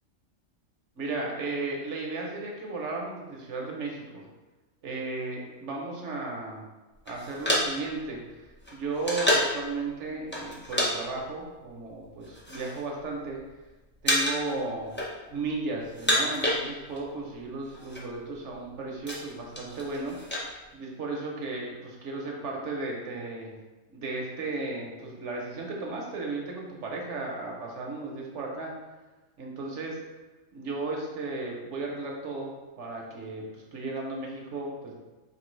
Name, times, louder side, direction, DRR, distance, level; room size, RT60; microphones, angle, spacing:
voice 1, 1.0-4.2 4.8-6.6 7.1-13.4 14.0-14.9 15.3-20.1 20.7-23.5 23.9-28.7 29.4-30.0 30.5-34.9, right 3 dB, 65° right, -1 dB, 1.1 m, -35 dB
sound 1, 7.1-9.6 10.3-10.9 11.2-11.4 12.1-12.8 13.1-13.6 14.0-14.5 14.8-15.5 15.8-17.1 17.4-17.5 17.7-18.0 18.5-20.5, equal, 10° left, 0.6 m, -29 dB
5.0 x 2.8 x 3.1 m, 1.2 s
omnidirectional pair, 1.3 m